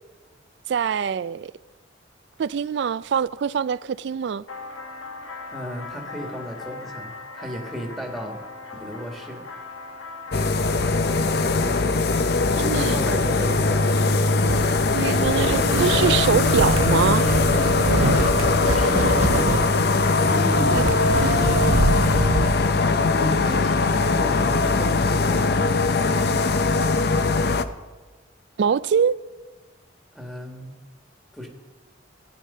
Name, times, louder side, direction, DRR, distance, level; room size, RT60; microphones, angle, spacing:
voice 1, 0.7-1.5 2.4-4.4 12.6-13.0 14.9-17.3 28.6-29.2, right 7 dB, 60° right, 0.3 m, -23 dB
sound 1, 4.5-21.3, left 3 dB, 85° left, 1.6 m, -38 dB
voice 2, 5.5-8.4 8.7-9.4 12.6-13.9 18.2-19.1 20.3-21.0 21.5-22.1 23.0-25.7 30.1-30.7 31.3-31.5, equal, ahead, 1.6 m, -34 dB
sound 2, 10.3-27.7, left 3 dB, 50° left, 0.6 m, -21 dB
sound 3, 14.5-22.5, right 2 dB, 85° right, 1.0 m, -25 dB
15.0 x 10.0 x 5.5 m
head